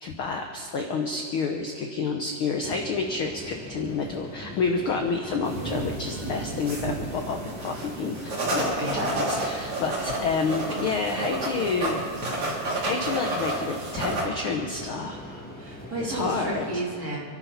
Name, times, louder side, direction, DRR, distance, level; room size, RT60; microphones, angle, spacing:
voice 1, 0.0-12.0 12.4-15.5 16.0-16.7, left 4 dB, 70° left, 3 dB, 1.3 m, -29 dB
sound 1, 2.6-16.8, equal, 5° left, 1.1 m, -42 dB
sound 2, 5.2-12.8, right 3 dB, 60° right, 3.6 m, -47 dB
sound 3, 5.4-14.2, right 2 dB, 45° right, 4.3 m, -31 dB
voice 2, 8.8-9.1 15.6-17.2, right 1 dB, 25° right, -6 dB, 3.7 m, -32 dB
28.0 x 12.0 x 4.2 m, 2.6 s
omnidirectional pair, 3.7 m